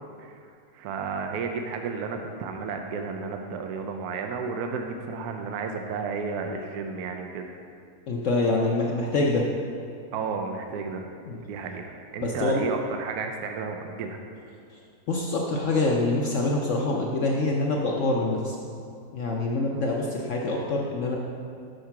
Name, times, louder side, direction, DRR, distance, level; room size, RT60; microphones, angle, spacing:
voice 1, 0.7-7.5 10.1-11.1 11.5-14.2, right 5 dB, 75° right, 4 dB, 1.1 m, -32 dB
voice 2, 8.1-9.5 11.3-11.4 12.2-12.7 15.1-18.6 19.1-21.2, left 2 dB, 60° left, -1 dB, 0.8 m, -25 dB
6.5 x 4.8 x 5.7 m, 2.3 s
omnidirectional pair, 1.7 m